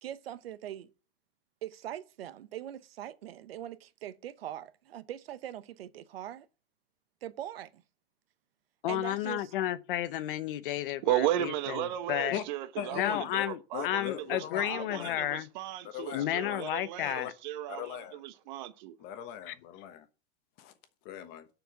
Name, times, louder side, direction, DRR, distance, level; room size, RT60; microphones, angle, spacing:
voice 1, 0.0-0.9 1.6-6.5 7.2-7.8 8.9-9.5, right 11 dB, 75° right, 0.9 m, -42 dB
voice 2, 8.8-12.4 12.9-15.5 16.1-17.3 19.5-19.6, left 13 dB, 60° left, 0.8 m, -32 dB
voice 3, 11.0-19.0, right 13 dB, 50° right, 1.1 m, -35 dB
voice 4, 12.8-13.5 13.7-15.2 15.9-16.6 17.1-17.3 17.7-18.2 19.0-20.1 20.6-20.7 21.0-21.5, left 10 dB, 35° left, 1.2 m, -39 dB
6.9 x 6.0 x 6.9 m
hypercardioid pair, 145°, 30 cm